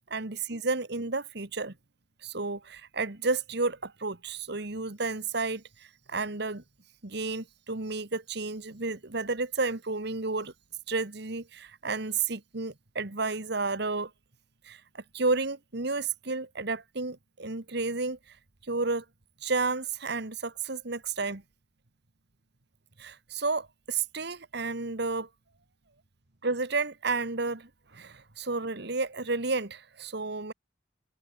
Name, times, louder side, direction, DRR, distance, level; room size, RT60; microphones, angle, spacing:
voice 1, 0.1-1.8 2.2-6.6 7.0-10.5 10.9-14.1 14.6-18.2 18.7-19.1 19.4-21.4 23.0-25.3 26.4-30.5, right 3 dB, 60° right, 1.8 m, -31 dB
head